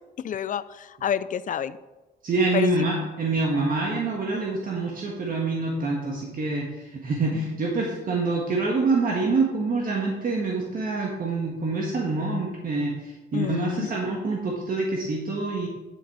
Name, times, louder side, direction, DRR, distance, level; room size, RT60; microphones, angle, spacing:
voice 1, 0.2-1.8 2.5-2.7 13.3-13.9, left 9 dB, 45° left, 15 dB, 0.5 m, -28 dB
voice 2, 2.2-15.7, right 3 dB, 50° right, -1 dB, 1.8 m, -26 dB
10.0 x 7.6 x 5.0 m, 1.1 s
cardioid pair, 110°, 18 cm